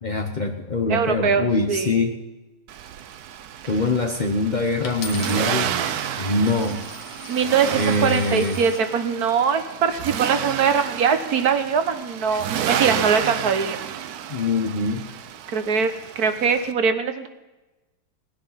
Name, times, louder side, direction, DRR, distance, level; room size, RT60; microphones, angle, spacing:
voice 1, 0.0-2.2 3.7-5.7 6.2-6.9 7.7-8.6 14.3-15.1, left 2 dB, 80° left, 3 dB, 0.4 m, -23 dB
voice 2, 0.9-1.9 7.3-13.8 15.5-17.3, right 6 dB, 50° right, 9 dB, 1.3 m, -22 dB
Accelerating revving vroom, 2.7-16.7, right 9 dB, 70° right, 0.9 m, -31 dB
Coin (dropping), 4.8-8.9 9.6-10.0, left 6 dB, 60° left, 2.1 m, -40 dB
19.0 x 10.5 x 5.7 m, 1.1 s
omnidirectional pair, 2.3 m